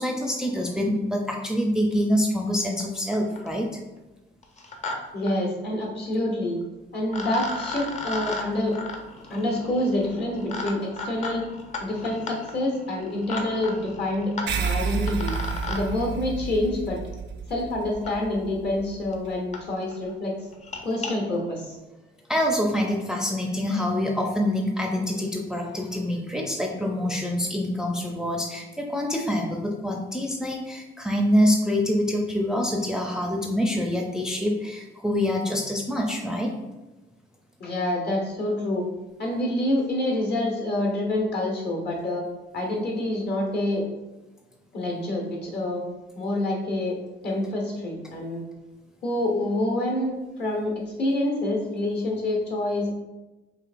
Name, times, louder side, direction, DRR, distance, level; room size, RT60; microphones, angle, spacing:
voice 1, 0.0-3.7 22.3-36.5, left 1 dB, 5° right, 0 dB, 0.5 m, -25 dB
sound 1, 2.8-2.9 3.1-3.6 4.4-5.0 5.2-5.3 6.6-6.7 7.1-15.8 17.1-17.2 18.0-18.1 18.8-18.9 19.1-19.2 19.5-19.6 19.9-20.1 20.5-21.1, left 3 dB, 35° left, 0.8 m, -35 dB
voice 2, 5.1-6.6 6.9-8.7 9.3-11.4 11.8-14.3 14.6-15.3 15.7-17.0 17.5-20.3 20.8-21.8 37.6-38.9 39.2-42.2 42.5-43.8 44.7-45.8 46.1-47.0 47.2-48.4 49.0-50.1 50.4-50.7 51.0-52.9, left 1 dB, 55° left, 0 dB, 1.3 m, -27 dB
sound 2, 14.5-19.3, right 6 dB, 65° right, 0.5 m, -31 dB
4.7 x 2.8 x 2.6 m, 1.1 s
cardioid pair, 90°, 20 cm